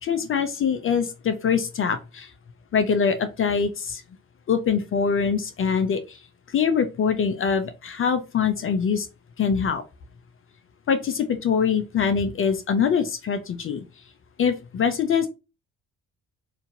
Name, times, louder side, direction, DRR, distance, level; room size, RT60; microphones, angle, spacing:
voice 1, 0.0-2.3 2.7-4.0 4.5-6.2 6.5-9.1 9.4-9.8 10.9-13.8 14.4-15.3, left 6 dB, 30° left, 9 dB, 0.5 m, -23 dB
3.8 x 2.5 x 2.7 m, 0.28 s
figure-of-eight pair, 40°, 41 cm